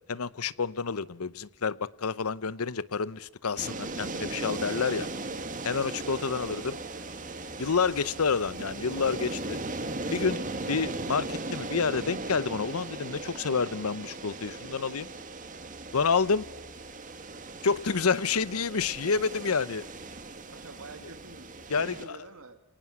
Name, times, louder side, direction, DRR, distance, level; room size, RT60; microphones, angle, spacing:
voice 1, 0.1-5.1 5.6-6.8 7.6-9.6 10.1-10.4 10.7-15.1 15.9-16.5 17.6-19.9 21.7-21.9, left 5 dB, 90° left, 0.8 m, -29 dB
sound 1, 3.6-22.1, right 2 dB, 35° right, 2.1 m, -38 dB
voice 2, 20.5-22.6, right 3 dB, 80° right, 2.4 m, -48 dB
29.0 x 19.0 x 6.1 m
head